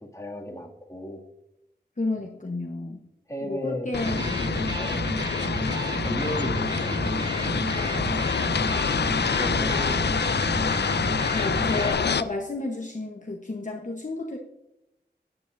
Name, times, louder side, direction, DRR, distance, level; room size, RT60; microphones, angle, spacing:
voice 1, 0.1-1.2 3.3-5.1 5.8-8.0 9.3-10.5, equal, 15° left, -1 dB, 2.3 m, -35 dB
voice 2, 2.0-3.1 3.4-4.5 11.3-14.4, left 2 dB, 45° left, 1 dB, 1.1 m, -32 dB
sound 1, 3.9-12.2, left 6 dB, 70° left, 0.4 m, -27 dB
Electric guitar, 3.9-11.9, right 1 dB, 25° right, 1.2 m, -31 dB
14.5 x 9.2 x 2.6 m, 0.85 s
wide cardioid pair, 50°, 18 cm